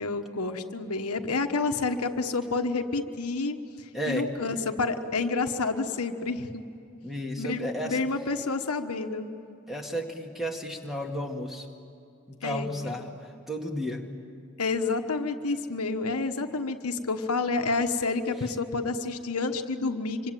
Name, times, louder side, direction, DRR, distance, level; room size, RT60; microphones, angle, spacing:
voice 1, 0.0-3.6 4.1-6.6 7.4-9.3 12.4-12.9 14.6-20.3, left 3 dB, 80° left, 6 dB, 1.3 m, -29 dB
voice 2, 3.9-4.3 7.0-8.0 9.7-11.7 12.3-14.1, equal, ahead, 2 dB, 2.1 m, -33 dB
26.0 x 25.0 x 9.1 m, 2.6 s
head